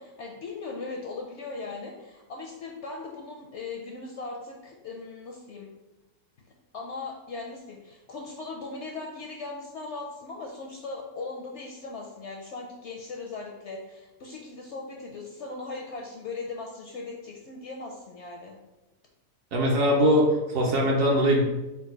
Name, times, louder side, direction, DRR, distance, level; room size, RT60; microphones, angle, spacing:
voice 1, 0.0-5.7 6.7-18.6, left 3 dB, 65° left, 0 dB, 0.7 m, -39 dB
voice 2, 19.5-21.4, equal, 60° right, -1 dB, 1.2 m, -21 dB
4.4 x 2.4 x 4.5 m, 1.0 s
omnidirectional pair, 1.6 m